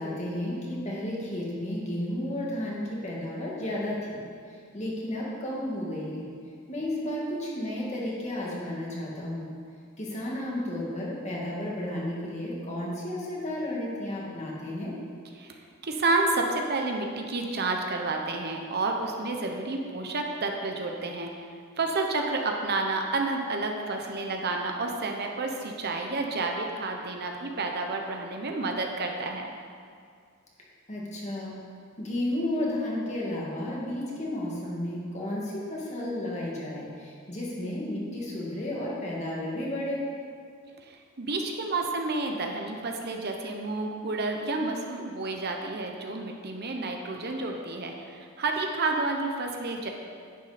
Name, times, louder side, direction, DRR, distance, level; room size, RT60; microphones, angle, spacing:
voice 1, 0.0-4.2 4.7-6.3 6.7-9.5 10.0-14.9 30.9-31.6 32.0-40.0, left 1 dB, 35° left, -5 dB, 2.3 m, -32 dB
voice 2, 15.4-21.4 21.8-29.5 40.8-49.9, right 3 dB, 50° right, 2 dB, 1.0 m, -30 dB
10.5 x 9.5 x 4.4 m, 2.2 s
head